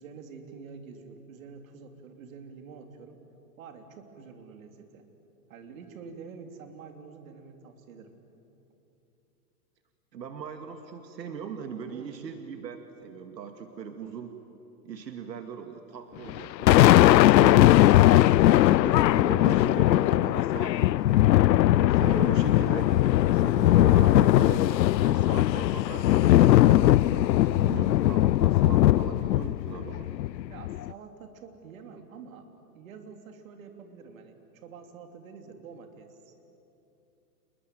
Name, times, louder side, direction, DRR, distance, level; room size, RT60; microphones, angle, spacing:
voice 1, 0.0-3.2 3.6-5.0 5.5-8.1 11.9-12.3 30.5-32.5 32.7-36.4, right 5 dB, 55° right, 6 dB, 3.2 m, -47 dB
voice 2, 10.1-14.3 14.8-17.8 18.4-21.0 21.4-22.9 23.3-24.7 25.0-30.1, right 7 dB, 85° right, 7 dB, 2.2 m, -39 dB
Thunder, 16.3-30.9, left 14 dB, 90° left, 0.6 m, -20 dB
28.5 x 21.0 x 9.4 m, 3.0 s
hypercardioid pair, 160°, 49 cm